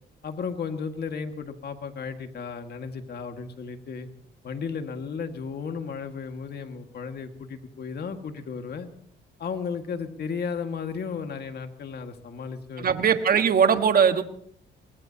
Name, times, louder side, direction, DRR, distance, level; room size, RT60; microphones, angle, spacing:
voice 1, 0.2-4.1 4.4-8.9 9.4-12.9, left 5 dB, 55° left, 6 dB, 1.9 m, -34 dB
voice 2, 12.8-14.2, right 7 dB, 45° right, 7 dB, 1.5 m, -20 dB
24.0 x 20.0 x 2.9 m, 0.65 s
cardioid pair, 90°, 20 cm